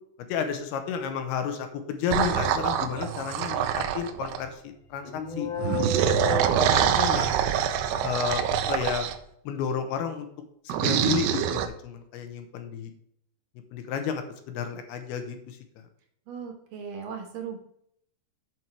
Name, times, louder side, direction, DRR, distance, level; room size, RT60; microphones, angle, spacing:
voice 1, 0.3-5.5 5.9-6.1 6.5-7.4 8.0-9.1 9.5-10.3 10.7-12.9 13.7-15.6, left 7 dB, 80° left, 7 dB, 2.9 m, -32 dB
sound 1, 2.1-4.5 5.6-9.2 10.7-11.7, right 9 dB, 85° right, 2.6 m, -25 dB
sound 2, 4.6-8.9, right 2 dB, 30° left, 3.1 m, -47 dB
sound 3, 5.0-7.6, left 1 dB, 60° left, 1.3 m, -32 dB
voice 2, 5.8-6.9 16.3-17.6, right 6 dB, 65° right, 4 dB, 2.4 m, -39 dB
7.7 x 6.0 x 4.6 m, 0.71 s
omnidirectional pair, 4.6 m